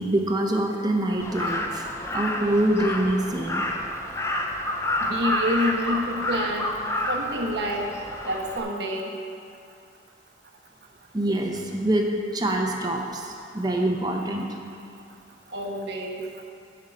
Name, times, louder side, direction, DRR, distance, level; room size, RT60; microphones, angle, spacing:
voice 1, 0.0-1.9 2.1-3.6 11.1-14.5, right 1 dB, 20° right, 2 dB, 0.8 m, -25 dB
Crow, 1.2-8.6, left 1 dB, 15° left, 0.6 m, -29 dB
voice 2, 5.0-6.7 7.1-7.9 8.3-9.1 15.5-16.3, equal, 70° right, 0 dB, 1.1 m, -28 dB
11.5 x 5.5 x 5.2 m, 2.5 s
head